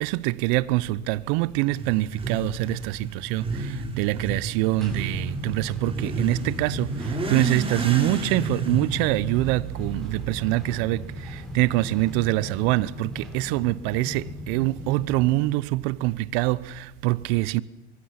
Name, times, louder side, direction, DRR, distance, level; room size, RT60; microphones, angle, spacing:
voice 1, 0.0-17.6, right 19 dB, 60° right, 0.9 m, -25 dB
Motorcycle / Accelerating revving vroom, 1.7-10.6, right 2 dB, 15° right, 4.2 m, -32 dB
sound 1, 4.8-15.4, left 1 dB, ahead, 6.3 m, -38 dB
24.5 x 22.5 x 5.9 m
hypercardioid pair, 105°, 37 cm